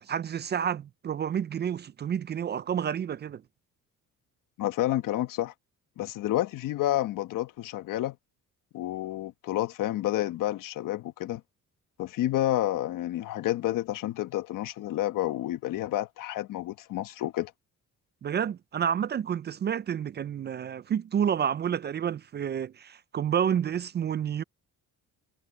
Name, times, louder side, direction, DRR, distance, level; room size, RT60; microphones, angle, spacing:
voice 1, 0.0-3.4 18.2-24.4, right 8 dB, 35° right, 0.4 m, -29 dB
voice 2, 4.6-5.5 6.0-8.1 8.7-11.4 12.0-17.5, left 14 dB, 80° left, 1.3 m, -29 dB
cardioid pair, 120°, 32 cm